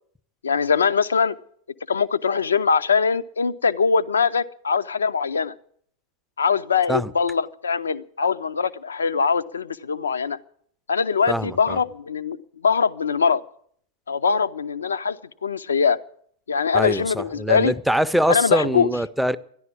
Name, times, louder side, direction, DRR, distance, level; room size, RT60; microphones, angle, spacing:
voice 1, 0.4-1.4 1.9-5.5 6.4-10.4 10.9-12.4 12.6-13.4 14.1-16.0 16.5-17.7 18.3-18.9, left 5 dB, 70° left, 0.5 m, -22 dB
voice 2, 11.3-11.8 16.7-19.4, equal, ahead, 0.5 m, -23 dB
13.0 x 11.0 x 8.5 m
figure-of-eight pair, 90°, 0 cm